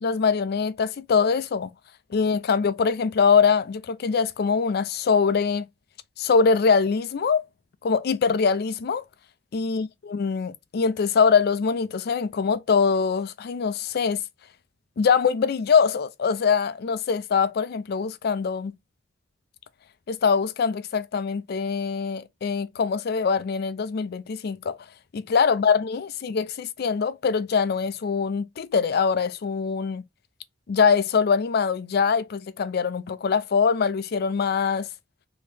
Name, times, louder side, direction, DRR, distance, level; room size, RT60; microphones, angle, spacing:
voice 1, 0.0-1.7 2.1-5.7 6.2-7.4 7.8-9.0 9.5-14.2 15.0-18.7 20.1-24.8 25.1-30.0 30.7-34.9, left 5 dB, 55° left, 0.4 m, -23 dB
3.0 x 2.7 x 3.3 m
head